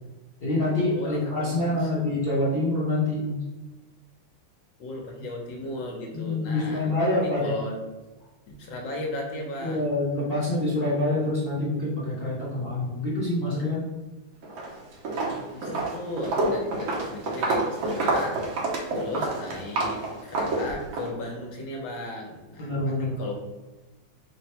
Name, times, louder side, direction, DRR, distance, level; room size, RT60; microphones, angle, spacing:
voice 1, 0.4-3.4 6.1-7.5 9.6-13.8 22.6-23.2, left 2 dB, 55° left, -7 dB, 0.6 m, -26 dB
voice 2, 1.0-2.1 4.8-7.8 8.2-8.3 8.6-9.9 10.5-10.8 15.1-18.7 18.9-23.3, left 1 dB, 75° left, 0 dB, 1.5 m, -36 dB
Walk footsteps, 14.4-14.7 15.0-21.1, right 2 dB, 75° right, 1.6 m, -28 dB
4.0 x 2.1 x 4.2 m, 1.2 s
omnidirectional pair, 2.2 m